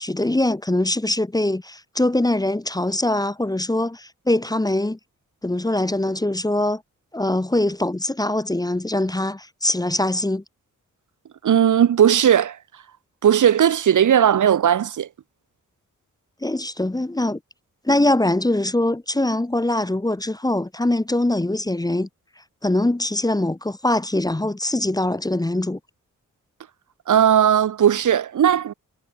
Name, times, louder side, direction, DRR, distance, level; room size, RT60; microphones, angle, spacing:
voice 1, 0.0-5.0 5.4-6.8 7.1-10.4 16.4-17.4 17.8-22.1 22.6-25.8, left 1 dB, 10° left, 0.9 m, -22 dB
voice 2, 11.4-12.6 13.2-15.1 27.1-28.7, right 9 dB, 70° right, 0.9 m, -17 dB
cardioid pair, 50°, 32 cm